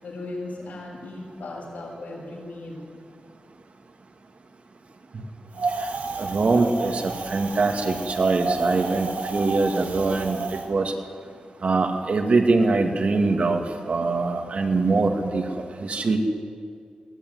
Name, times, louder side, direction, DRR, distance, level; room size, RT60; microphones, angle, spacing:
voice 1, 0.0-2.8, left 2 dB, 85° left, -2 dB, 7.9 m, -37 dB
Wind, 5.5-10.6, right 4 dB, 85° right, 2.0 m, -31 dB
voice 2, 6.2-10.9 11.6-13.6 13.9-15.4 15.8-16.2, right 3 dB, 55° right, 3 dB, 2.2 m, -23 dB
23.5 x 17.0 x 9.6 m, 2.2 s
wide cardioid pair, 115°, 3 cm